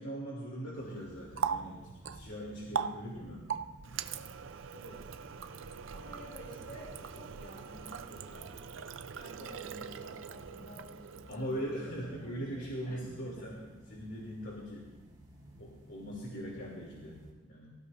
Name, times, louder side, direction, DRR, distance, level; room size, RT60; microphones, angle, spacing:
voice 1, 0.0-1.8 2.1-3.5 11.3-13.6 13.9-14.9 15.6-17.7, equal, 70° left, -4 dB, 2.9 m, -40 dB
sound 1, 0.7-17.3, equal, 20° right, 4.3 m, -56 dB
Water tap faucet, 0.9-11.6, right 6 dB, 80° right, 0.5 m, -41 dB
voice 2, 5.9-8.5 9.1-13.0, equal, 45° left, -2 dB, 5.7 m, -51 dB
24.5 x 15.5 x 2.6 m, 1.2 s
head